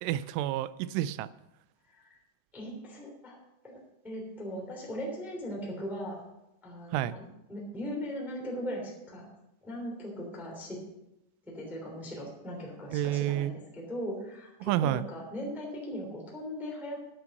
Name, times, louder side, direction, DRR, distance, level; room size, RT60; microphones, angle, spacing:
voice 1, 0.0-1.3 6.9-7.2 12.9-13.5 14.6-15.1, right 13 dB, 85° right, 16 dB, 3.0 m, -29 dB
voice 2, 2.5-3.4 3.6-3.8 4.0-6.2 6.6-7.2 7.5-9.3 9.6-10.8 11.5-17.0, equal, ahead, -1 dB, 1.9 m, -39 dB
10.0 x 9.0 x 6.3 m, 0.89 s
omnidirectional pair, 5.5 m